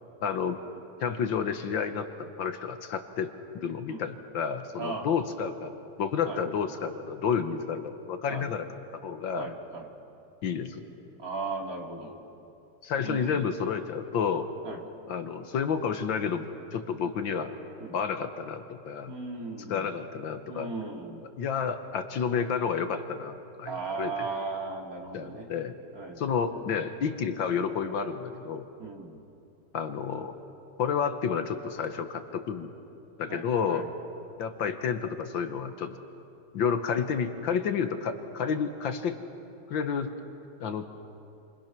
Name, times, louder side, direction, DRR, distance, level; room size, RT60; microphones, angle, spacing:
voice 1, 0.2-0.6 1.0-5.7 6.0-8.7 9.0-9.5 10.4-10.8 12.8-14.5 15.1-17.5 17.9-19.1 19.7-20.7 21.4-24.3 25.1-25.7 26.2-28.7 29.7-30.3 30.8-32.7 33.2-33.9 34.4-36.0 36.5-39.2 39.7-40.1 40.6-40.9, left 6 dB, 70° left, 8 dB, 1.8 m, -30 dB
voice 2, 9.4-9.9 11.2-12.2 13.0-13.4 14.6-14.8 17.8-17.9 19.1-19.9 20.5-21.2 23.6-25.5 25.9-26.4 28.8-29.2 33.3-33.9, right 3 dB, 45° right, 1 dB, 2.8 m, -37 dB
28.5 x 27.0 x 6.0 m, 2.7 s
omnidirectional pair, 2.2 m